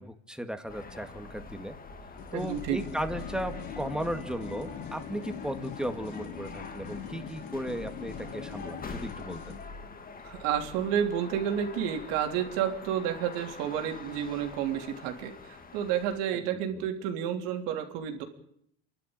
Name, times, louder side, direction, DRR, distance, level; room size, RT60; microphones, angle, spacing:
voice 1, 0.0-1.8 2.3-9.5 16.3-16.4, equal, ahead, 8 dB, 2.1 m, -36 dB
sound 1, 0.7-16.2, left 3 dB, 25° left, 2.2 m, -44 dB
sound 2, 2.2-9.7, left 8 dB, 60° left, 2.5 m, -43 dB
voice 2, 2.3-2.8 10.2-18.2, right 9 dB, 75° right, 4 dB, 3.6 m, -30 dB
29.0 x 12.0 x 9.0 m, 0.72 s
supercardioid pair, 100°, 33 cm